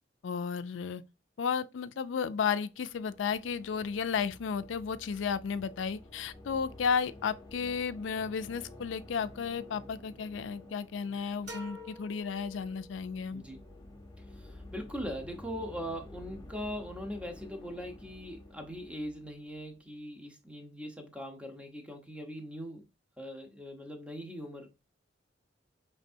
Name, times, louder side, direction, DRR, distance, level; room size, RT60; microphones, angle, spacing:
voice 1, 0.2-1.0 1.4-13.4, left 6 dB, 90° left, 0.4 m, -33 dB
sound 1, 2.7-19.8, left 1 dB, 25° left, 0.8 m, -51 dB
sound 2, 11.5-13.2, equal, 65° right, 1.7 m, -47 dB
voice 2, 14.3-22.9 23.2-24.7, equal, 5° right, 0.8 m, -41 dB
5.2 x 3.4 x 2.6 m
head